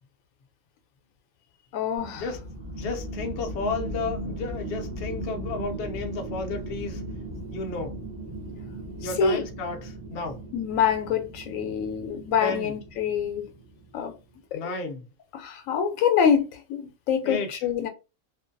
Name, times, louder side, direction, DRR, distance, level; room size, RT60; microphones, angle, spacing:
voice 1, 1.7-2.2 9.2-9.4 10.5-13.5 13.9-14.1 14.5-14.6 15.3-17.9, left 7 dB, 85° left, 1.0 m, -25 dB
sound 1, 2.0-14.0, right 1 dB, 25° right, 0.8 m, -37 dB
voice 2, 2.8-7.0 7.5-8.0 9.0-10.4 12.4-12.7 14.5-15.0 17.2-17.5, left 3 dB, 60° left, 0.7 m, -32 dB
2.5 x 2.2 x 2.5 m
omnidirectional pair, 1.3 m